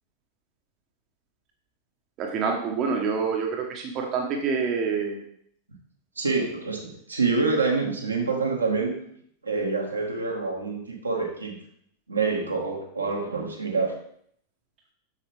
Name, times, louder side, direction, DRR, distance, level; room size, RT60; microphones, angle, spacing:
voice 1, 2.2-5.2, right 5 dB, 35° right, 2 dB, 1.2 m, -27 dB
voice 2, 6.2-9.0 9.4-11.6 12.1-14.0, right 4 dB, 80° right, 0 dB, 1.8 m, -26 dB
7.5 x 7.0 x 3.5 m, 0.66 s
figure-of-eight pair, 90°, 0 cm